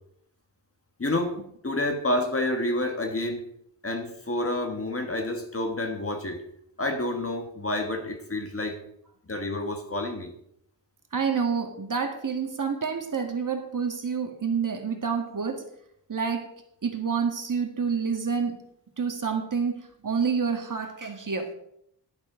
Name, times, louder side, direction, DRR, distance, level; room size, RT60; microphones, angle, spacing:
voice 1, 1.0-1.4 1.6-3.4 3.8-6.4 6.8-8.8 9.3-10.3, left 1 dB, 30° left, 5 dB, 1.5 m, -29 dB
voice 2, 11.1-15.6 16.1-16.5 16.8-18.6 19.0-21.5, right 6 dB, 45° right, 4 dB, 1.9 m, -28 dB
11.5 x 11.5 x 3.8 m, 0.73 s
wide cardioid pair, 110°, 44 cm